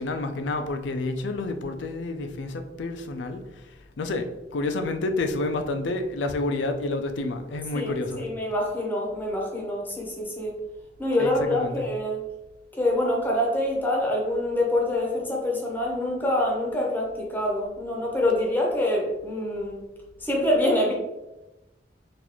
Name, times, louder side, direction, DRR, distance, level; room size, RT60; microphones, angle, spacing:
voice 1, 0.0-8.3 11.2-11.9, left 2 dB, 80° left, 7 dB, 0.4 m, -29 dB
voice 2, 7.7-10.6 11.0-12.2 12.8-19.8 20.2-20.9, left 1 dB, 10° left, -2 dB, 0.7 m, -25 dB
3.9 x 2.5 x 3.0 m, 0.99 s
head